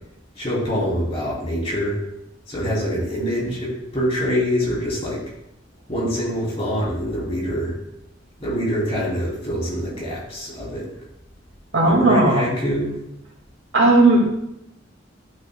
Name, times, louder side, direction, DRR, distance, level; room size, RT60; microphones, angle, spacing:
voice 1, 0.3-2.0 2.5-5.2 5.9-7.7 8.4-10.9 11.8-13.0, equal, 30° left, -4 dB, 2.8 m, -25 dB
voice 2, 11.7-12.5 13.7-14.5, right 2 dB, 90° right, -1 dB, 2.0 m, -16 dB
11.0 x 6.3 x 2.2 m, 0.84 s
head